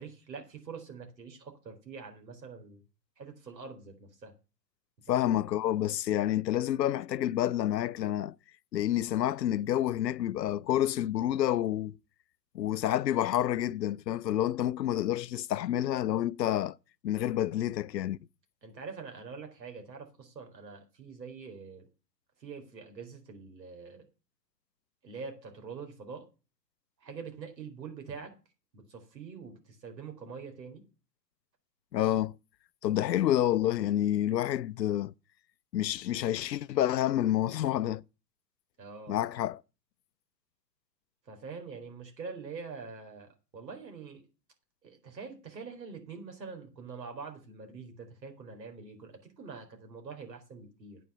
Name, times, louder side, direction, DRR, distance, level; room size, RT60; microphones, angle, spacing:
voice 1, 0.0-2.8 3.2-4.3 5.1-5.3 18.6-21.9 22.4-24.1 25.0-26.3 27.0-28.3 28.7-30.8 38.8-39.2 41.3-44.3 44.8-51.0, right 5 dB, 85° right, 4.2 m, -45 dB
voice 2, 5.1-8.3 8.7-12.0 12.5-16.8 17.0-18.2 31.9-32.4 32.8-35.1 35.7-38.0 39.1-39.6, left 12 dB, 85° left, 0.6 m, -28 dB
8.9 x 6.1 x 8.3 m
hypercardioid pair, 130°, 49 cm